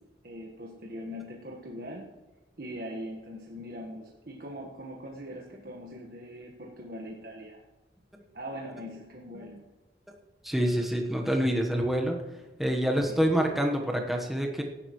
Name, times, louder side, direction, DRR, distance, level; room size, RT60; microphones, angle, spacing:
voice 1, 0.2-2.1 2.6-7.6 8.3-9.7 13.1-13.3, equal, 55° right, -1 dB, 1.4 m, -41 dB
voice 2, 10.4-12.2 12.6-14.6, equal, ahead, 1 dB, 1.1 m, -26 dB
17.0 x 11.0 x 3.1 m, 1.1 s
head